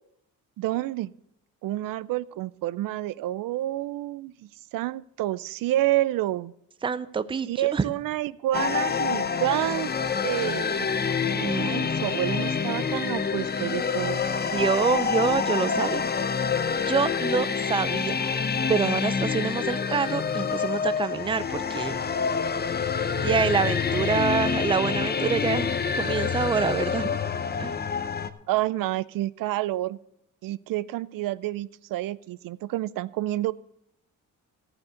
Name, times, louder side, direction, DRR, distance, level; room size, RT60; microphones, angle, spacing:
voice 1, 0.6-1.1 1.6-4.3 4.7-6.5 7.5-9.9 10.2-10.9 11.5-14.2 28.5-30.0 30.4-33.5, right 15 dB, 75° right, 18 dB, 0.5 m, -29 dB
voice 2, 6.8-7.8 9.5-9.6 11.4-11.7 14.5-16.0 16.9-18.4 18.7-22.0 23.2-27.2 27.6-27.8, right 5 dB, 15° right, 14 dB, 0.4 m, -26 dB
sound 1, 8.5-28.3, left 6 dB, 30° left, 0.7 m, -27 dB
14.5 x 7.1 x 6.3 m, 0.77 s
cardioid pair, 110°, 34 cm